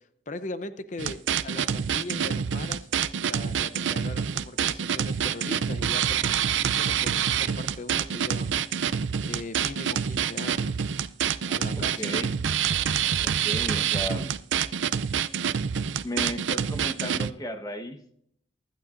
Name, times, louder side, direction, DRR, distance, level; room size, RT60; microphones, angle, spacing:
voice 1, 0.3-2.9 3.2-6.4 6.7-8.6 9.2-10.9 11.5-12.2, left 2 dB, 40° left, 11 dB, 0.6 m, -39 dB
sound 1, 1.0-17.3, right 8 dB, 75° right, 0.5 m, -27 dB
voice 2, 11.8-12.3 13.2-14.3 16.0-18.1, left 1 dB, 20° left, 6 dB, 1.2 m, -35 dB
24.5 x 11.5 x 2.6 m, 0.68 s
head